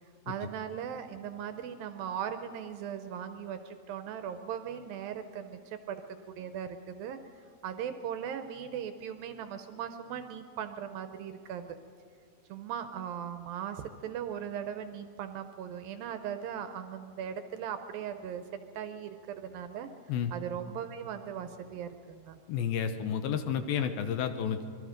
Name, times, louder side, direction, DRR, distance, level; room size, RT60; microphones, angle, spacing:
voice 1, 0.3-6.0 6.4-7.2 7.6-11.8 12.5-18.4 18.7-19.9 20.3-22.4, right 8 dB, 75° right, 9 dB, 2.2 m, -38 dB
voice 2, 22.5-24.7, left 8 dB, 75° left, 8 dB, 2.4 m, -31 dB
25.5 x 22.0 x 5.1 m, 2.4 s
omnidirectional pair, 4.7 m